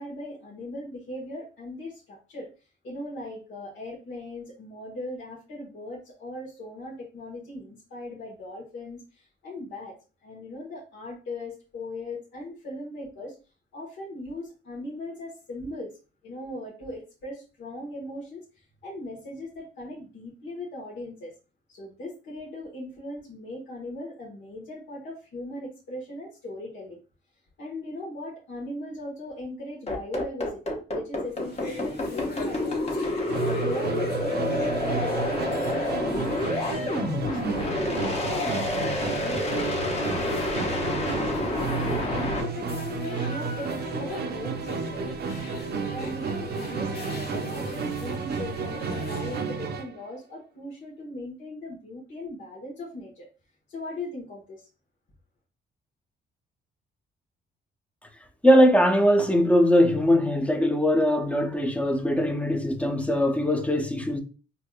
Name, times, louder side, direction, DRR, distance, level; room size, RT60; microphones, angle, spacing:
voice 1, 0.0-2.5 2.8-13.3 13.7-16.0 16.2-21.3 21.7-27.0 27.6-32.9 33.4-37.6 37.9-41.5 41.8-45.0 45.9-53.3 53.7-54.7, left 1 dB, 70° left, 1.2 m, -38 dB
sound 1, 29.9-42.4, left 2 dB, 30° left, 1.0 m, -28 dB
sound 2, 31.2-49.7, left 2 dB, 55° left, 1.4 m, -41 dB
Musical instrument, 33.3-50.0, right 5 dB, 55° right, 0.5 m, -32 dB
voice 2, 58.4-64.2, equal, 5° left, 0.6 m, -21 dB
4.4 x 2.7 x 2.3 m
cardioid pair, 90°, 20 cm